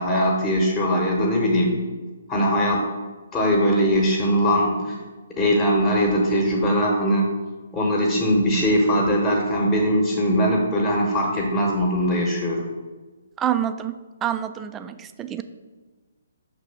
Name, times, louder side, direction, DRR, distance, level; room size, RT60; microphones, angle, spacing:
voice 1, 0.0-1.7 2.3-2.8 3.3-4.9 5.4-7.3 7.7-12.6, equal, 15° left, -1 dB, 1.1 m, -21 dB
voice 2, 13.4-15.4, right 10 dB, 15° right, 10 dB, 0.3 m, -27 dB
5.8 x 3.3 x 5.8 m, 1.3 s
figure-of-eight pair, 135°, 0 cm